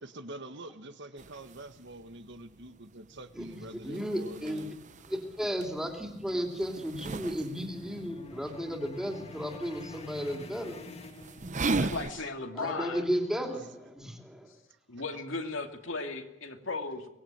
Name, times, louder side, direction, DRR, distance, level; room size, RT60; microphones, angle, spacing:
voice 1, 0.0-4.7 11.8-12.0, right 1 dB, 65° right, 9 dB, 1.7 m, -45 dB
sound 1, 1.2-12.1, right 3 dB, 40° right, 0.9 m, -39 dB
voice 2, 3.8-4.7 5.1-10.8 12.6-14.5, equal, 5° right, 3 dB, 3.1 m, -34 dB
sound 2, 4.9-11.9, left 1 dB, 35° left, 1.8 m, -48 dB
voice 3, 11.8-13.0 14.9-17.1, left 3 dB, 80° left, 5 dB, 2.6 m, -36 dB
24.0 x 19.5 x 9.0 m, 0.90 s
head